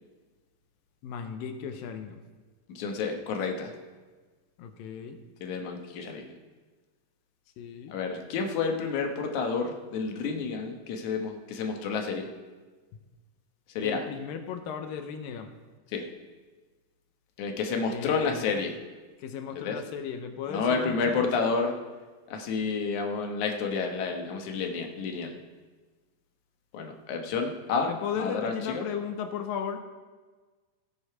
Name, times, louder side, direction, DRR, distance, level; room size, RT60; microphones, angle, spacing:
voice 1, 1.0-2.2 4.6-5.2 7.6-7.9 13.8-15.5 17.9-18.5 19.2-21.3 27.8-29.8, left 7 dB, 80° left, 7 dB, 2.4 m, -36 dB
voice 2, 2.7-3.7 5.4-6.3 7.9-12.3 13.8-14.0 15.9-16.0 17.4-18.8 19.6-19.8 20.5-21.8 22.3-25.4 26.7-28.9, left 5 dB, 65° left, 3 dB, 2.3 m, -30 dB
17.5 x 6.4 x 4.8 m, 1.3 s
omnidirectional pair, 4.1 m